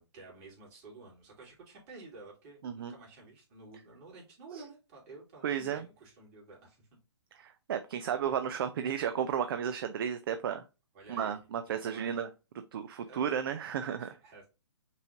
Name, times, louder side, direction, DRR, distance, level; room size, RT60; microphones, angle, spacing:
voice 1, 0.0-6.9 10.9-11.4 11.7-12.2 13.0-13.4 14.0-14.5, right 3 dB, 35° right, -2 dB, 2.6 m, -52 dB
voice 2, 5.4-5.9 7.4-10.6 11.1-12.3 12.7-14.1, right 8 dB, 55° right, 9 dB, 0.4 m, -33 dB
5.4 x 3.1 x 2.5 m, 0.29 s
hypercardioid pair, 135°, 15 cm